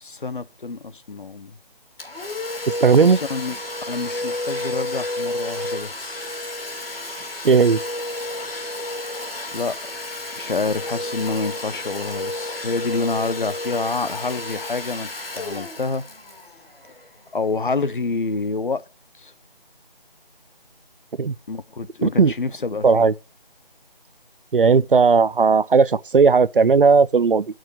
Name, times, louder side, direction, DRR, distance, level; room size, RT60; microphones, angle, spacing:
voice 1, 0.0-1.6 2.9-3.6 3.9-6.4 9.5-9.8 10.4-16.0 17.3-18.8 19.1-19.3 21.5-23.1, left 4 dB, 60° left, 0.9 m, -28 dB
Domestic sounds home sounds, 2.0-17.5, left 1 dB, 75° left, 2.3 m, -31 dB
voice 2, 2.8-3.2 7.4-7.8 21.2-21.3 22.0-22.3 22.8-23.1 24.5-27.4, right 5 dB, 65° right, 0.5 m, -16 dB
10.5 x 6.4 x 8.4 m
figure-of-eight pair, 160°, 29 cm